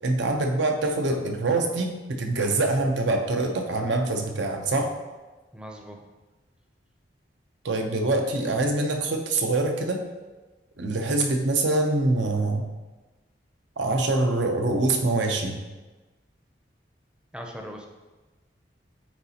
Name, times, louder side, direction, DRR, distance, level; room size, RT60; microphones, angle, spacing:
voice 1, 0.0-5.0 7.6-10.0 10.8-12.7 13.8-15.6, right 2 dB, 85° right, 4 dB, 0.7 m, -24 dB
voice 2, 5.5-6.1 17.3-17.9, equal, 5° right, 2 dB, 0.5 m, -39 dB
8.8 x 3.9 x 2.9 m, 1.2 s
head